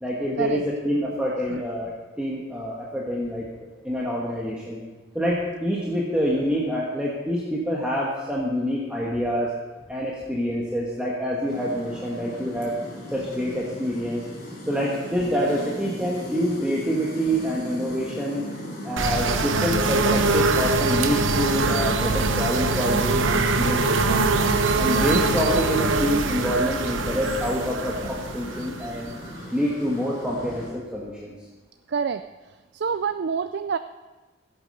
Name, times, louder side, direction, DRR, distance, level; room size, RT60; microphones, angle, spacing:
voice 1, 0.0-4.8 5.1-9.5 9.9-12.7 13.1-14.2 14.7-18.4 18.8-24.3 24.8-29.1 29.5-31.3, equal, 5° right, -5 dB, 1.4 m, -26 dB
sound 1, 11.5-30.7, equal, 45° left, 4.2 m, -38 dB
sound 2, 19.0-29.6, right 3 dB, 75° right, 0.9 m, -23 dB
voice 2, 31.9-32.2 32.7-33.8, right 6 dB, 55° right, 10 dB, 0.4 m, -26 dB
15.5 x 8.1 x 5.4 m, 1.2 s
head